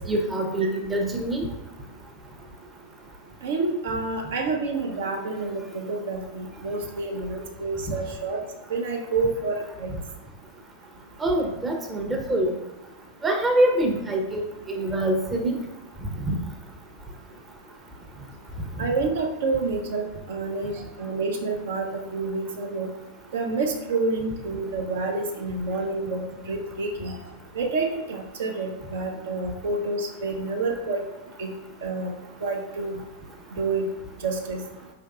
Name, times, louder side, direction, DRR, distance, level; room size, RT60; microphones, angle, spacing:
voice 1, 0.1-1.5 11.2-12.5 13.2-15.6 16.3-16.4, right 1 dB, 15° right, 2 dB, 0.6 m, -24 dB
voice 2, 3.4-8.4 8.7-9.9 18.8-20.7 21.0-22.9 23.3-27.2 27.5-31.1 31.4-31.5 31.8-32.1 32.4-33.0 33.5-33.9 34.2-34.6, right 3 dB, 60° right, 1 dB, 0.6 m, -28 dB
4.6 x 3.4 x 2.3 m, 1.0 s
figure-of-eight pair, 90°, 0 cm